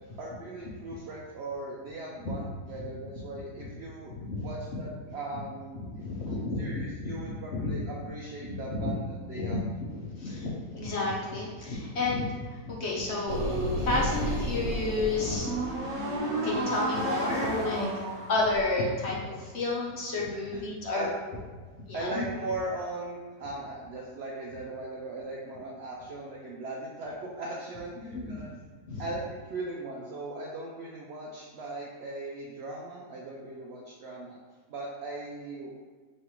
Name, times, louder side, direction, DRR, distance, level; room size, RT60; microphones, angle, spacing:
voice 1, 0.2-4.1 4.4-5.8 6.3-9.6 20.5-20.6 20.9-21.1 21.9-28.5 29.0-34.4 34.7-35.9, right 2 dB, 75° right, -3 dB, 0.6 m, -38 dB
voice 2, 4.1-4.8 5.9-7.2 7.5-7.8 8.4-8.9 9.3-9.6 9.9-13.4 13.7-15.5 16.4-17.9 18.3-21.1 21.9-22.2 28.0-28.3 28.9-29.0, left 2 dB, 55° left, -4 dB, 0.8 m, -31 dB
sound 1, 13.3-18.6, equal, 55° right, 1.3 m, -31 dB
5.0 x 3.2 x 3.0 m, 1.4 s
omnidirectional pair, 1.7 m